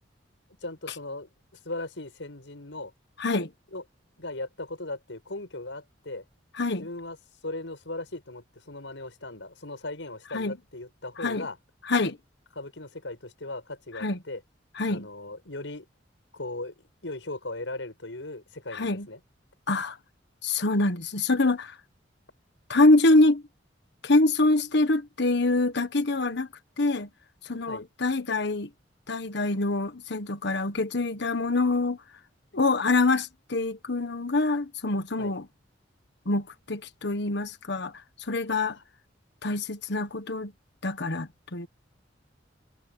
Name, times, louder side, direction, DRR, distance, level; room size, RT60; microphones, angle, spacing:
voice 1, 0.6-1.3 1.6-2.9 3.7-3.8 4.2-6.2 6.8-7.2 7.4-11.6 12.6-14.4 14.9-15.9 16.3-19.2 27.7-27.9 35.2-35.3 38.7-38.8, left 2 dB, 85° left, 6.2 m, -38 dB
voice 2, 3.2-3.5 6.6-6.9 10.3-10.6 11.2-11.5 11.9-12.2 14.0-14.2 14.8-15.1 18.7-19.1 19.7-20.0 20.4-21.7 22.7-23.4 24.0-26.5 26.8-27.1 27.4-28.7 29.1-32.0 32.5-35.5 36.2-37.9 38.3-38.8 39.4-40.5 40.8-41.7, left 2 dB, 65° left, 1.4 m, -25 dB
head